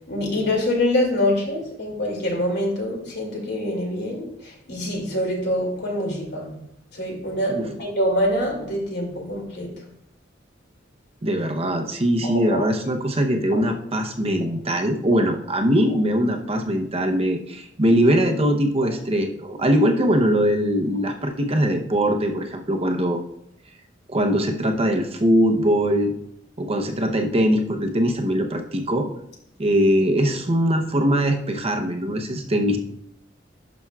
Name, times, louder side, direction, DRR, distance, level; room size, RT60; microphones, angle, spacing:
voice 1, 0.1-4.3 4.7-6.5 7.0-9.7 12.2-12.7, left 1 dB, 60° left, -1 dB, 2.5 m, -25 dB
voice 2, 11.2-23.2 24.1-26.1 26.6-29.1 29.6-32.8, equal, 30° right, 4 dB, 0.7 m, -21 dB
11.5 x 6.0 x 2.4 m, 0.72 s
head